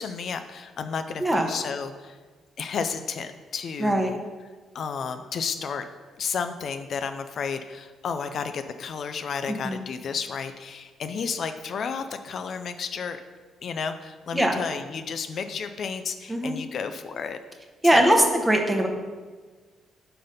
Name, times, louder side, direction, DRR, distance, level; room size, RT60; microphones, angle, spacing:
voice 1, 0.0-2.2 2.6-4.2 4.7-5.9 6.2-13.2 13.6-17.4 17.9-18.3, left 6 dB, 60° left, 8 dB, 0.3 m, -32 dB
voice 2, 3.8-4.1 9.5-9.8 14.3-14.6 16.3-16.6 17.8-18.9, right 1 dB, 15° right, 3 dB, 0.9 m, -21 dB
5.5 x 4.0 x 5.0 m, 1.4 s
cardioid pair, 90°, 0 cm